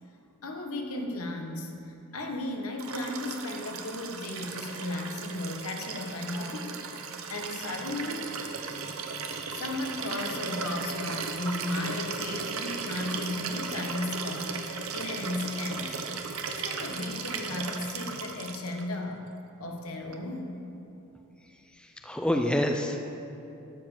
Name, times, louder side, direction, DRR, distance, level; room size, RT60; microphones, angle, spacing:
voice 1, 0.4-6.8 7.3-8.5 9.5-14.6 14.9-16.0 16.4-19.3 19.6-20.6, left 2 dB, 85° left, 3 dB, 1.2 m, -35 dB
Liquid, 2.8-18.8 20.1-20.2, right 5 dB, 75° right, 0.8 m, -36 dB
voice 2, 21.8-23.0, left 1 dB, 5° left, 4 dB, 0.4 m, -27 dB
12.5 x 5.0 x 7.1 m, 2.8 s
head